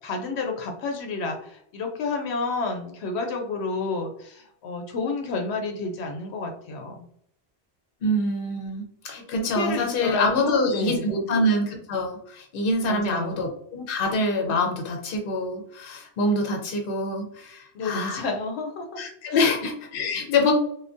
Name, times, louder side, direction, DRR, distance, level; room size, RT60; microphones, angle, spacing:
voice 1, 0.0-7.0 9.3-11.2 12.8-13.4 17.7-19.0 19.3-19.5, left 3 dB, 90° left, 3 dB, 0.9 m, -30 dB
voice 2, 8.0-18.2 19.0-20.5, left 2 dB, 65° left, 2 dB, 0.9 m, -25 dB
3.5 x 2.2 x 2.5 m, 0.68 s
omnidirectional pair, 1.1 m